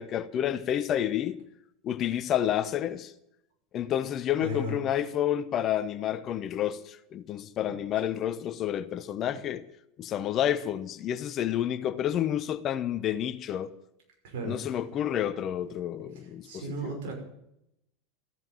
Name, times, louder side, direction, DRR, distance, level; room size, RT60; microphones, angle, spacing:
voice 1, 0.0-1.4 1.8-3.1 3.7-9.6 10.0-13.7 14.4-17.0, left 10 dB, 40° left, 0.8 m, -29 dB
voice 2, 4.4-4.7 14.2-14.6 16.2-17.1, right 1 dB, 60° right, 5.6 m, -35 dB
14.0 x 9.0 x 9.2 m
figure-of-eight pair, 80°, 0 cm